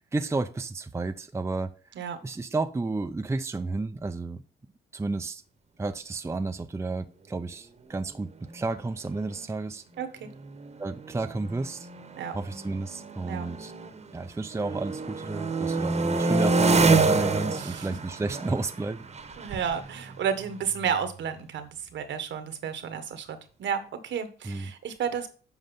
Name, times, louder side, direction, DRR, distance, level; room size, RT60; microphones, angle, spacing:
voice 1, 0.0-1.7 2.2-4.4 4.9-5.4 5.8-9.8 10.8-11.9 12.3-13.7 14.1-19.0 24.4-24.7, right 3 dB, 15° right, 0.6 m, -32 dB
sound 1, 8.7-8.8 9.1-9.4 10.2-14.1 14.4-21.1, right 3 dB, 35° right, 1.1 m, -28 dB
voice 2, 10.0-10.3 12.2-12.3 13.3-13.5 17.6-17.9 19.4-25.3, right 7 dB, 65° right, 1.3 m, -32 dB
7.7 x 4.8 x 5.3 m
cardioid pair, 90°, 20 cm